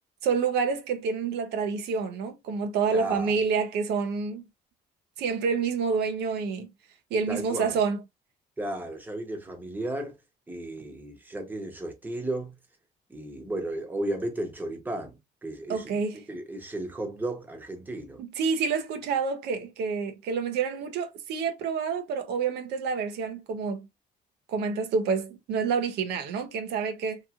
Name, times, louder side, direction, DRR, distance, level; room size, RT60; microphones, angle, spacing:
voice 1, 0.2-4.4 5.2-6.7 7.1-8.0 15.7-16.2 18.2-23.9 24.5-27.2, right 5 dB, 75° right, 0.7 m, -28 dB
voice 2, 2.9-3.3 7.3-7.8 8.6-10.2 10.5-12.5 13.1-18.2, right 1 dB, 10° right, 0.9 m, -34 dB
2.9 x 2.6 x 2.3 m
cardioid pair, 110°, 17 cm